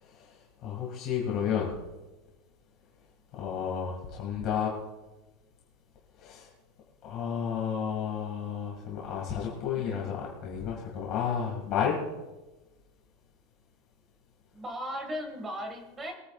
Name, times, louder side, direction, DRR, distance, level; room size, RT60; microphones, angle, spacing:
voice 1, 0.0-1.7 3.3-4.7 6.2-6.5 7.0-12.0, left 8 dB, 30° left, -2 dB, 2.1 m, -32 dB
voice 2, 9.8-10.1 14.5-16.1, equal, 15° right, 4 dB, 1.9 m, -37 dB
23.5 x 9.6 x 2.4 m, 1.1 s
supercardioid pair, 175°, 0 cm